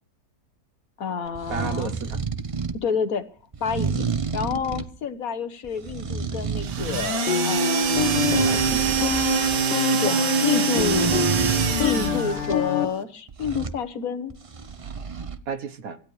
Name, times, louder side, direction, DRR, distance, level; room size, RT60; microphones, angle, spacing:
voice 1, 1.0-1.9 2.8-3.2 3.6-4.0 4.3-8.4 10.0-11.1 11.8-14.3, left 6 dB, 60° left, 11 dB, 1.5 m, -29 dB
sound 1, 1.3-2.8 3.5-4.9 5.6-7.2 7.6-9.6 10.8-12.6 13.3-13.8 14.3-15.4, right 5 dB, 40° right, 0.5 m, -30 dB
voice 2, 1.5-2.2 8.4-9.3 9.9-10.1 15.5-16.0, right 5 dB, 60° right, 10 dB, 1.4 m, -33 dB
sound 2, 6.6-12.5, right 7 dB, 90° right, 1.9 m, -24 dB
sound 3, 7.3-12.9, left 7 dB, 85° left, 1.6 m, -26 dB
25.5 x 12.5 x 3.2 m, 0.42 s
omnidirectional pair, 1.7 m